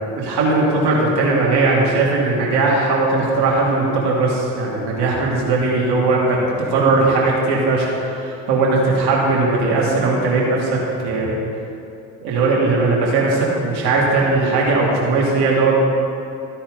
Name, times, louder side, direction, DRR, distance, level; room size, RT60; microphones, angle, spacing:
voice 1, 0.0-11.4 12.2-15.8, right 3 dB, 55° right, -4 dB, 2.7 m, -18 dB
13.0 x 9.9 x 3.9 m, 2.6 s
hypercardioid pair, 60°, 48 cm